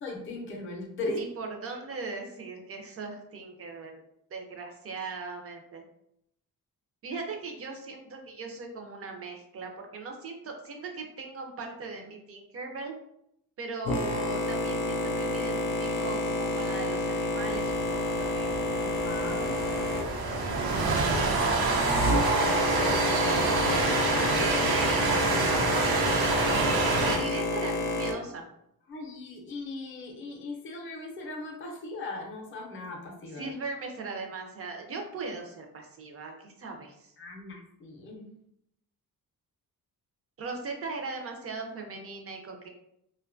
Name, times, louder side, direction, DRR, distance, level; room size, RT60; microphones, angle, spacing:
voice 1, 0.0-1.2 18.7-19.6 23.5-24.3 28.9-33.5 37.2-38.3, left 2 dB, 35° left, 0 dB, 0.5 m, -38 dB
voice 2, 1.1-3.9 4.3-5.8 7.0-12.9 13.6-18.5 21.4-22.9 24.1-28.4 33.4-37.1 40.4-42.7, right 3 dB, 40° right, 3 dB, 0.4 m, -39 dB
Boat Water vehicle, 13.8-28.1, left 1 dB, 90° left, 0.5 m, -30 dB
Train, 17.4-27.2, right 3 dB, 85° right, 0.6 m, -27 dB
2.5 x 2.2 x 2.5 m, 0.76 s
wide cardioid pair, 160°, 36 cm